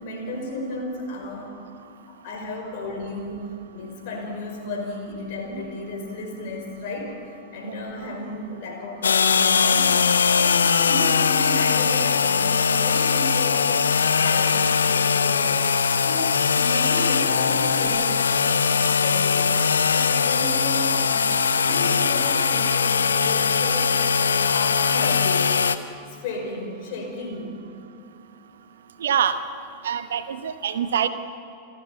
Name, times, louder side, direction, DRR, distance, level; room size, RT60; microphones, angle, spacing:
voice 1, 0.0-1.6 2.1-15.7 16.0-21.3 21.5-25.6 26.1-27.6, left 2 dB, 50° left, 2 dB, 5.0 m, -34 dB
sound 1, 9.0-25.8, left 6 dB, 70° left, 0.8 m, -21 dB
voice 2, 29.0-29.4 29.8-31.1, right 8 dB, 65° right, 11 dB, 1.0 m, -24 dB
28.5 x 13.0 x 7.2 m, 2.7 s
figure-of-eight pair, 90°, 0 cm